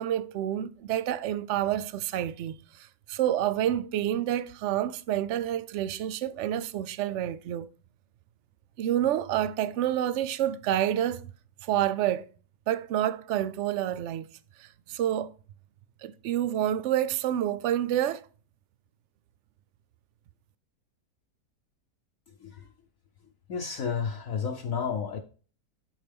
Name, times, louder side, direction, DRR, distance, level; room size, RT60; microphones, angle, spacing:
voice 1, 0.0-7.7 8.8-11.2 11.6-12.3 12.7-14.3 14.6-15.3 16.0-18.3, right 11 dB, 70° right, 0.7 m, -28 dB
voice 2, 23.5-25.2, left 6 dB, 60° left, 1.1 m, -31 dB
11.0 x 4.4 x 3.5 m
omnidirectional pair, 1.8 m